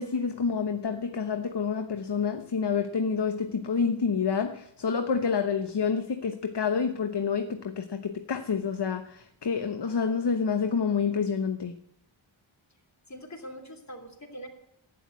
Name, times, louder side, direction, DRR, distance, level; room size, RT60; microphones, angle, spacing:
voice 1, 0.0-11.7, left 6 dB, 55° left, 7 dB, 1.0 m, -28 dB
voice 2, 13.1-14.5, equal, 35° left, 3 dB, 3.3 m, -43 dB
12.0 x 9.4 x 9.5 m, 0.75 s
wide cardioid pair, 65°, 48 cm